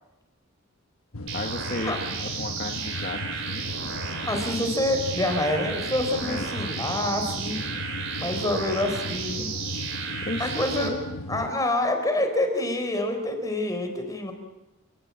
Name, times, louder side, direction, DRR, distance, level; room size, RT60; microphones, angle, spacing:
sound 1, 1.1-11.5, left 2 dB, 90° left, 1.2 m, -36 dB
voice 1, 1.3-3.8 6.2-6.5 10.2-11.1, left 2 dB, 45° left, 3 dB, 1.5 m, -34 dB
sound 2, 1.3-10.9, right 6 dB, 60° right, 4.3 m, -33 dB
voice 2, 4.3-7.6 8.1-9.5 10.4-10.9 11.3-14.3, left 1 dB, 15° left, 5 dB, 4.1 m, -27 dB
28.5 x 18.0 x 8.9 m, 1.0 s
head